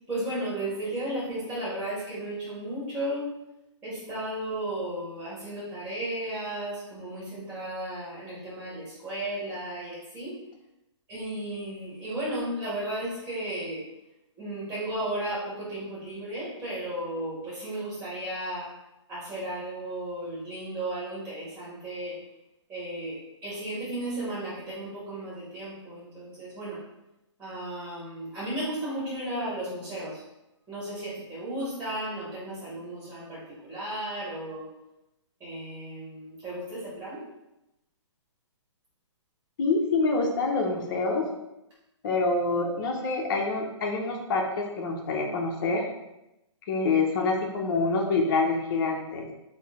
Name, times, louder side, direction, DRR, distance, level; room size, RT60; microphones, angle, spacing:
voice 1, 0.1-3.3 3.8-10.4 11.1-13.8 14.4-18.7 19.1-22.2 22.7-26.8 27.4-30.2 30.7-34.7 35.4-37.2, right 1 dB, 10° right, -8 dB, 1.1 m, -34 dB
voice 2, 39.6-41.3 42.0-45.8 46.7-49.3, left 3 dB, 45° left, 0 dB, 0.7 m, -26 dB
3.8 x 2.0 x 3.5 m, 0.92 s
hypercardioid pair, 145°, 16 cm